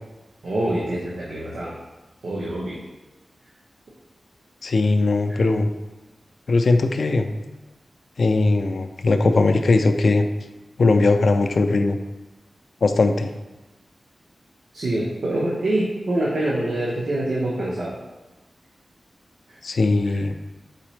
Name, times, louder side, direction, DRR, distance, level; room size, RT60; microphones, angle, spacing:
voice 1, 0.4-1.7 2.2-2.8 5.3-5.4 14.7-17.9 19.5-19.6, right 1 dB, 75° right, -5 dB, 0.7 m, -25 dB
voice 2, 4.6-5.7 6.5-7.3 8.2-10.3 10.8-12.0 12.8-13.3 19.6-20.3, left 3 dB, 70° left, 7 dB, 0.3 m, -19 dB
4.1 x 4.0 x 3.1 m, 1.1 s
wide cardioid pair, 100°, 0 cm